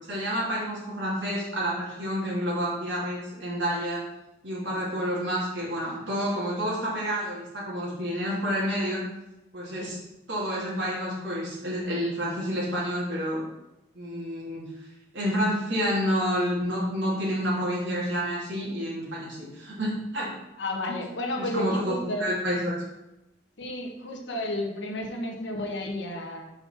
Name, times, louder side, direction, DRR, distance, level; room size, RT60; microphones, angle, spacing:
voice 1, 0.1-4.0 4.4-9.0 9.5-10.0 10.3-13.4 13.9-14.6 15.1-20.3 20.9-21.0 21.4-21.9 22.2-22.8, equal, 80° right, -5 dB, 2.6 m, -29 dB
voice 2, 20.6-22.3 23.6-26.5, left 1 dB, 80° left, 2 dB, 1.2 m, -32 dB
5.4 x 4.6 x 5.8 m, 0.94 s
head